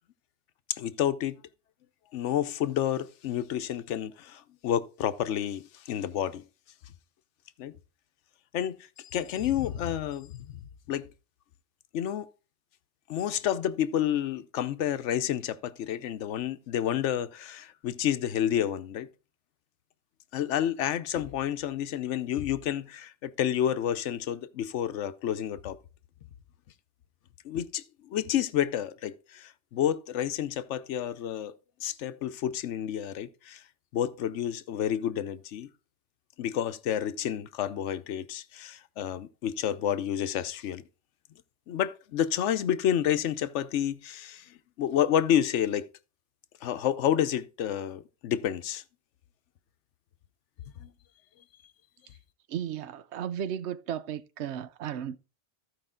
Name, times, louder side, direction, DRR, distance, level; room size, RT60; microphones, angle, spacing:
voice 1, 0.7-1.4 2.1-6.4 7.6-7.8 8.5-8.8 9.0-11.1 11.9-12.3 13.1-19.1 20.3-25.8 27.4-31.5 31.8-33.6 33.9-35.7 36.4-40.9 41.7-45.9 46.6-48.8 50.8-50.9, left 10 dB, 90° left, 1.0 m, -30 dB
voice 2, 52.5-55.2, right 9 dB, 75° right, 0.9 m, -34 dB
14.5 x 4.9 x 3.7 m
omnidirectional pair, 1.2 m